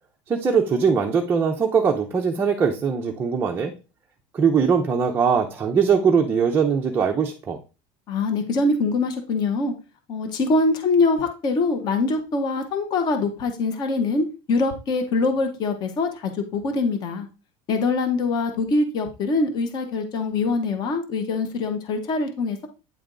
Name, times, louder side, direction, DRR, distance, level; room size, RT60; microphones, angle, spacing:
voice 1, 0.3-3.7 4.3-7.6, right 6 dB, 15° right, 2 dB, 0.5 m, -21 dB
voice 2, 8.1-9.7 10.1-17.3 17.7-22.7, left 3 dB, 30° left, 7 dB, 0.9 m, -23 dB
8.8 x 3.4 x 3.8 m, 0.31 s
cardioid pair, 175°, 15 cm